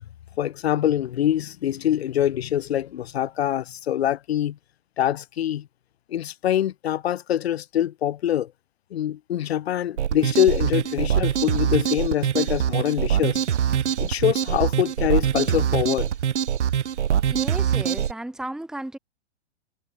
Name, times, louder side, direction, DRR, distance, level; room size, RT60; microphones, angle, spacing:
voice 1, 0.4-4.6 5.0-5.7 6.1-8.5 8.9-13.4 14.0-16.1, left 11 dB, 65° left, 3.0 m, -24 dB
sound 1, 10.0-18.1, right 9 dB, 85° right, 2.6 m, -23 dB
voice 2, 17.1-19.0, right 1 dB, ahead, 3.3 m, -34 dB
hypercardioid pair, 160°, 34 cm